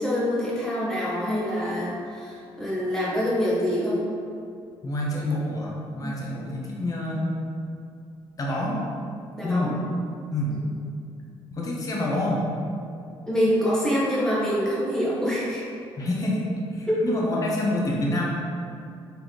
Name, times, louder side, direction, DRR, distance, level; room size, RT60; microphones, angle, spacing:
voice 1, 0.0-4.0 6.0-6.1 9.3-9.7 10.5-10.6 13.3-15.6 16.9-17.0, equal, 5° left, -8 dB, 1.3 m, -25 dB
voice 2, 4.8-7.3 8.4-8.8 9.4-9.7 10.3-10.6 11.5-12.4 16.0-16.4 16.7-18.3, left 1 dB, 35° left, -3 dB, 0.7 m, -27 dB
4.0 x 3.4 x 3.0 m, 2.5 s
cardioid pair, 100°, 10 cm